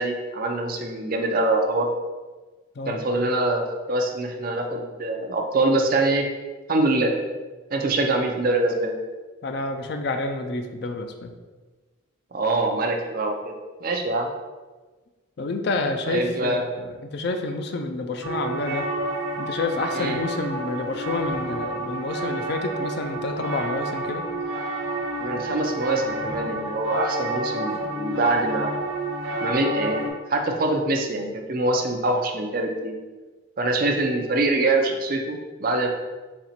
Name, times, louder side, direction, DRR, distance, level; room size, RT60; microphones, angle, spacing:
voice 1, 0.0-1.9 2.9-6.3 6.7-7.1 7.7-8.9 12.3-14.3 16.0-16.7 19.9-20.2 25.2-28.8 29.4-30.0 30.3-33.0 33.6-35.9, right 2 dB, 45° right, 3 dB, 0.5 m, -24 dB
voice 2, 9.4-11.3 15.4-18.9 19.4-24.2, left 2 dB, 50° left, 5 dB, 0.4 m, -29 dB
sound 1, 18.2-30.1, right 1 dB, 85° right, 0.8 m, -30 dB
4.2 x 2.9 x 4.2 m, 1.3 s
head